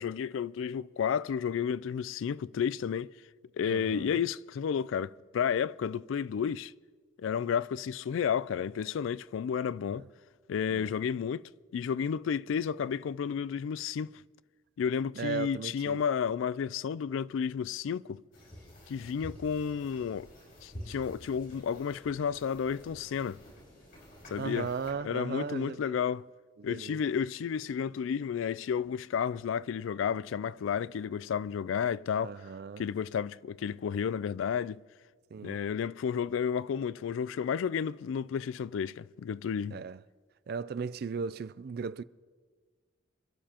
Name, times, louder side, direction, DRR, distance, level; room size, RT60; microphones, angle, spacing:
voice 1, 0.0-3.1 3.6-6.7 7.2-10.1 10.5-14.1 14.8-18.2 18.9-20.3 20.6-23.4 24.3-24.7 25.0-26.3 26.6-32.4 32.8-34.8 35.4-39.8, left 7 dB, 80° left, 0.3 m, -32 dB
voice 2, 3.6-4.2 9.9-10.1 10.7-10.9 15.2-16.0 24.4-26.0 26.6-27.0 32.2-32.8 35.3-35.6 39.7-40.0 40.5-42.0, right 5 dB, 50° right, 0.3 m, -37 dB
sound 1, 18.3-24.9, equal, 50° left, 5.0 m, -49 dB
27.0 x 12.5 x 2.9 m
head